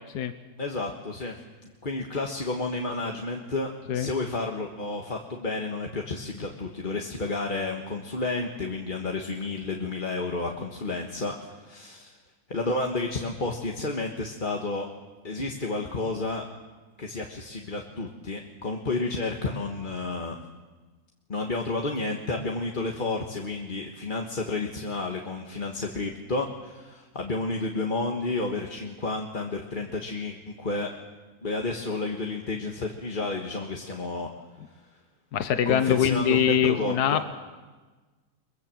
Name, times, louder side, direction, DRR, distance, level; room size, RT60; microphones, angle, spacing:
voice 1, 0.6-1.4 1.8-12.2 12.5-14.9 15.2-16.4 17.0-20.4 21.3-30.9 31.4-34.3 35.6-37.2, left 3 dB, 35° left, 1 dB, 1.5 m, -31 dB
voice 2, 35.3-37.2, left 9 dB, 80° left, 10 dB, 1.5 m, -23 dB
23.0 x 22.5 x 7.6 m, 1.3 s
omnidirectional pair, 1.7 m